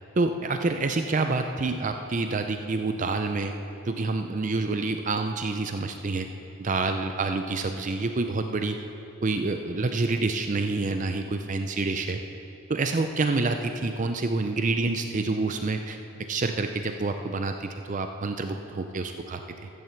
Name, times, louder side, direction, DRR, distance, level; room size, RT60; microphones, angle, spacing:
voice 1, 0.2-3.5 3.9-6.3 6.6-8.8 9.2-12.2 12.7-16.0 16.3-19.7, right 3 dB, 35° right, 6 dB, 0.4 m, -27 dB
13.5 x 7.6 x 7.0 m, 3.0 s
head